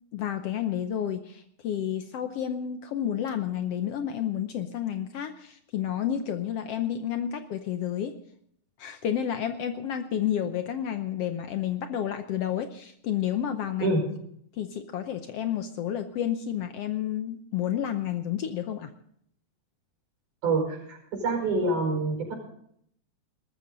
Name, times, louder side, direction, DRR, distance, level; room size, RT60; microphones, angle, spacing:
voice 1, 0.1-8.1 8.8-14.0 14.5-18.9, left 10 dB, 70° left, 8 dB, 1.5 m, -30 dB
voice 2, 20.4-22.3, right 3 dB, 75° right, 0 dB, 6.3 m, -26 dB
19.5 x 13.5 x 3.9 m, 0.68 s
omnidirectional pair, 3.5 m